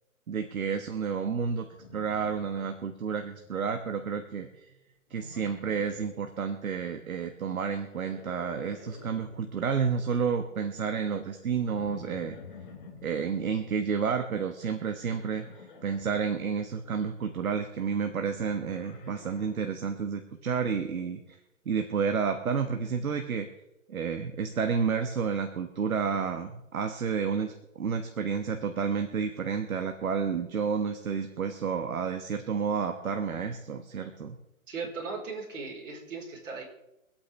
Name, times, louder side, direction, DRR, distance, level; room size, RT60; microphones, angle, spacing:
voice 1, 0.3-1.7 1.9-4.7 5.1-12.4 13.0-21.4 21.6-23.5 23.9-34.4, right 6 dB, 75° right, 6 dB, 1.4 m, -30 dB
Livestock farm animals working animals, 1.7-3.0 3.3-3.8 5.1-6.1 7.7-9.4 11.7-13.1 15.1-16.2 18.0-19.7, left 4 dB, 35° left, 1.8 m, -49 dB
voice 2, 34.7-36.6, right 4 dB, 60° right, -1 dB, 4.6 m, -37 dB
25.0 x 8.7 x 3.4 m, 0.90 s
hypercardioid pair, 170°, 42 cm